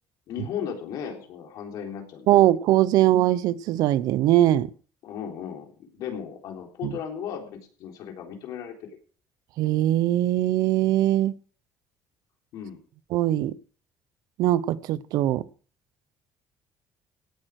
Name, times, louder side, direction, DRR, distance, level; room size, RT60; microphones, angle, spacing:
voice 1, 0.3-2.3 5.0-8.9 12.5-12.8, left 8 dB, 70° left, 3.6 m, -36 dB
voice 2, 2.3-4.7 6.8-6.9 9.6-11.3 13.1-13.6 14.4-15.5, right 13 dB, 70° right, 0.7 m, -21 dB
17.0 x 8.8 x 4.7 m
cardioid pair, 160°, 7 cm